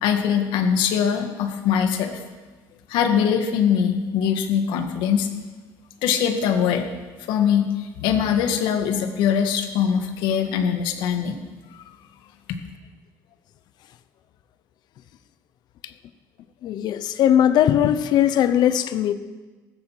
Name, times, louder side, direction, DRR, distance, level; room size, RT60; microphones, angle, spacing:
voice 1, 0.0-2.2 2.9-5.3 6.0-6.9 7.3-7.7 8.0-11.3, left 8 dB, 80° left, 5 dB, 1.9 m, -22 dB
voice 2, 16.6-19.1, left 10 dB, 65° left, 12 dB, 0.9 m, -19 dB
15.0 x 13.5 x 5.8 m, 1.3 s
cardioid pair, 100°, 8 cm